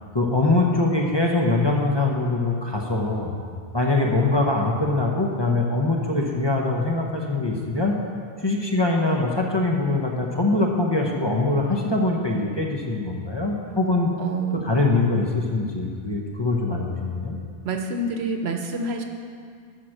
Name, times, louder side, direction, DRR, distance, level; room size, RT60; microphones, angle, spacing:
voice 1, 0.1-3.3 3.7-7.9 8.4-14.1 14.6-17.4, left 2 dB, 25° left, -1 dB, 0.8 m, -23 dB
voice 2, 14.2-14.7 17.6-19.0, right 3 dB, 75° right, 4 dB, 1.1 m, -27 dB
11.5 x 4.6 x 6.4 m, 2.2 s
omnidirectional pair, 1.1 m